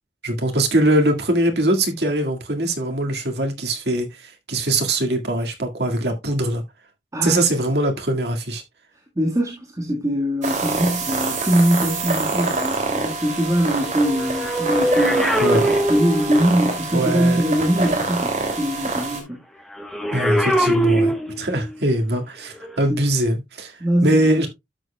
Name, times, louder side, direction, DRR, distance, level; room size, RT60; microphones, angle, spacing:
voice 1, 0.2-6.6 7.2-8.6 15.4-15.7 16.9-17.4 20.1-23.7 24.0-24.5, right 1 dB, 70° right, 1.9 m, -22 dB
voice 2, 7.1-7.5 9.1-19.4 22.9-23.0 23.8-24.5, equal, 20° right, 1.6 m, -22 dB
sound 1, 10.4-19.2, right 3 dB, 45° right, 2.6 m, -26 dB
sound 2, 13.9-16.6 19.8-21.7 22.6-22.8, equal, ahead, 1.0 m, -22 dB
12.5 x 6.9 x 2.2 m
head